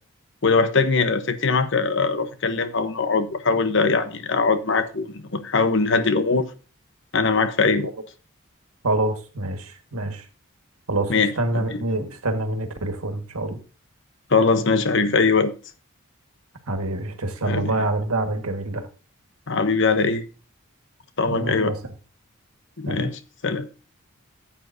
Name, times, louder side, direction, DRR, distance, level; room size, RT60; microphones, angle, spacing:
voice 1, 0.4-6.5 7.1-7.9 11.1-11.8 14.3-15.5 17.5-17.7 19.5-20.2 21.2-21.7 22.8-23.7, left 4 dB, 55° left, 0.9 m, -21 dB
voice 2, 8.8-10.3 10.9-13.6 16.7-18.9 21.3-21.8 22.9-23.1, right 2 dB, 90° right, 1.7 m, -26 dB
14.5 x 8.4 x 2.7 m
head